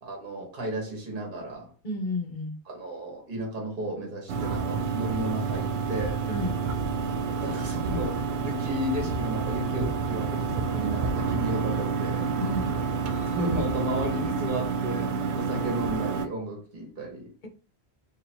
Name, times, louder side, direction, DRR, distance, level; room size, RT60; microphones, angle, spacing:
voice 1, 0.0-1.7 2.7-6.3 7.4-12.3 13.2-17.3, right 1 dB, 55° right, 1.5 m, -33 dB
voice 2, 1.8-2.5 6.3-6.5 12.4-12.7 13.0-13.4, left 2 dB, 50° left, 1.0 m, -32 dB
sound 1, 4.3-16.3, right 5 dB, 75° right, 0.8 m, -29 dB
3.0 x 2.8 x 4.4 m
omnidirectional pair, 1.1 m